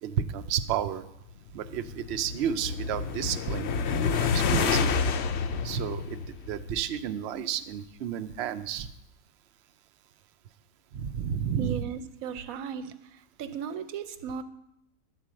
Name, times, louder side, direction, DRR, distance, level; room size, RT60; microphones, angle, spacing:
voice 1, 0.0-1.0 1.5-5.0 5.6-8.9 10.9-11.7, right 9 dB, 90° right, 9 dB, 0.5 m, -31 dB
sound 1, 1.5-7.0, left 6 dB, 75° left, 0.6 m, -29 dB
voice 2, 11.6-14.4, right 8 dB, 70° right, 11 dB, 1.0 m, -36 dB
10.5 x 4.5 x 7.4 m, 0.84 s
omnidirectional pair, 1.7 m